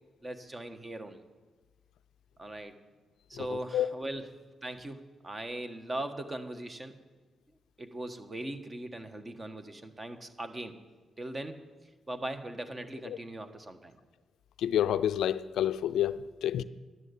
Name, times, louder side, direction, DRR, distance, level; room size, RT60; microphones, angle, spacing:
voice 1, 0.2-1.2 2.4-2.7 3.3-4.3 4.6-7.0 7.8-10.8 11.2-11.6 12.1-14.0, right 1 dB, 30° right, 1.4 m, -39 dB
voice 2, 14.6-16.6, left 11 dB, 85° left, 0.4 m, -28 dB
11.0 x 10.5 x 8.2 m
cardioid pair, 75°, 0 cm